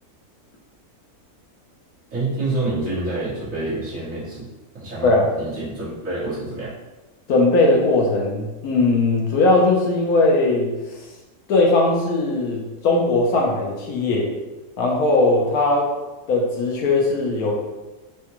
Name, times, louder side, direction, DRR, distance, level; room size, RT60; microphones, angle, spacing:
voice 1, 2.1-4.5 4.7-6.7, right 2 dB, 60° right, -10 dB, 1.9 m, -27 dB
voice 2, 7.3-10.7 11.5-14.3 14.8-15.9 16.3-17.6, left 2 dB, 80° left, -1 dB, 1.3 m, -19 dB
4.9 x 2.2 x 2.9 m, 1.1 s
omnidirectional pair, 1.6 m